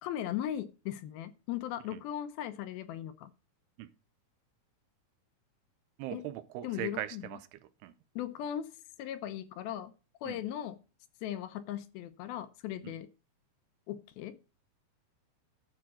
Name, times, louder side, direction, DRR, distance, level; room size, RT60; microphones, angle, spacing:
voice 1, 0.0-3.3 6.1-6.3 6.6-7.2 8.2-8.7 9.0-9.9 10.2-10.8 11.2-13.1 13.9-14.4, left 11 dB, 75° left, 2.5 m, -38 dB
voice 2, 6.0-7.9 10.3-10.4 12.8-12.9, right 13 dB, 90° right, 2.8 m, -40 dB
12.0 x 4.4 x 7.5 m
omnidirectional pair, 4.6 m